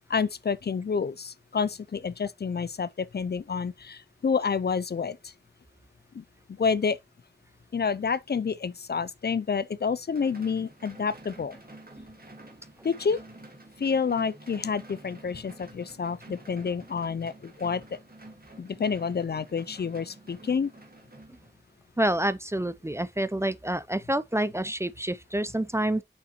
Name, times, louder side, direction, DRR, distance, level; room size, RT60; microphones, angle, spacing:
voice 1, 0.0-5.3 6.1-6.2 6.6-7.0 7.7-11.6 12.8-13.2 13.8-17.8 18.6-20.7, left 5 dB, 60° left, 0.4 m, -29 dB
sound 1, 10.1-21.8, right 2 dB, 55° right, 1.7 m, -49 dB
voice 2, 22.0-26.0, right 1 dB, 15° right, 0.4 m, -28 dB
6.4 x 5.6 x 2.9 m
wide cardioid pair, 45°, 19 cm